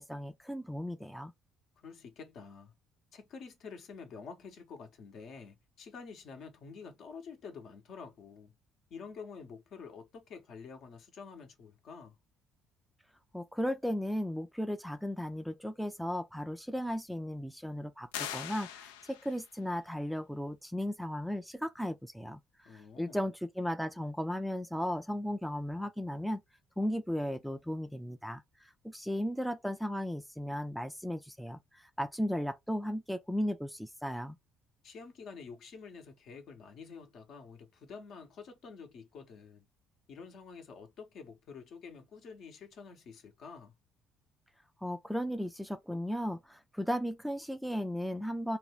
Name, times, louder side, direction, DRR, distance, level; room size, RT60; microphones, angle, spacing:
voice 1, 0.0-1.3 13.3-26.4 26.8-34.4 44.8-48.6, equal, ahead, 0.4 m, -36 dB
voice 2, 1.8-2.7 3.1-8.5 8.9-12.2 22.6-23.2 34.8-39.7 40.1-43.7, left 5 dB, 60° left, 0.8 m, -48 dB
sound 1, 18.1-19.5, left 10 dB, 80° left, 0.3 m, -41 dB
2.6 x 2.2 x 3.1 m
hypercardioid pair, 55°, 0 cm